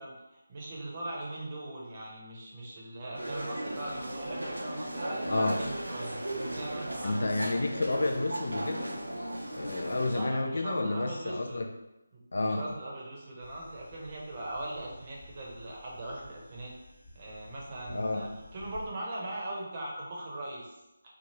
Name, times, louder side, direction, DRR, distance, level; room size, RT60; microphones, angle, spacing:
voice 1, 0.0-6.2 6.5-7.7 10.0-11.6 12.1-16.7 17.1-20.7, right 1 dB, 35° right, -3 dB, 0.8 m, -40 dB
sound 1, 3.1-10.2, right 1 dB, 85° right, 0.5 m, -36 dB
voice 2, 5.2-5.6 7.0-8.9 9.5-11.6 12.3-12.6 17.9-18.3, left 2 dB, 65° left, 3 dB, 0.4 m, -30 dB
sound 2, 13.4-18.9, left 1 dB, 40° left, 0.8 m, -52 dB
2.8 x 2.4 x 2.9 m, 0.97 s
figure-of-eight pair, 160°, 0 cm